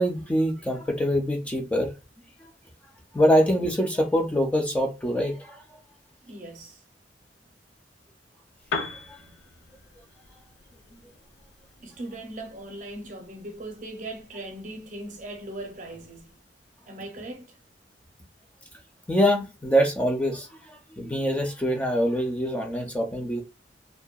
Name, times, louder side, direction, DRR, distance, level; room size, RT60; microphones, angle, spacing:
voice 1, 0.0-1.9 2.4-2.5 3.1-5.6 9.1-9.2 19.1-23.4, equal, 10° left, 0.4 m, -24 dB
voice 2, 6.2-6.8 9.2-9.7 11.8-16.4 16.9-17.6, right 1 dB, 45° right, 0.6 m, -39 dB
Piano, 8.6-16.4, left 4 dB, 65° left, 0.5 m, -42 dB
2.6 x 2.1 x 2.3 m
head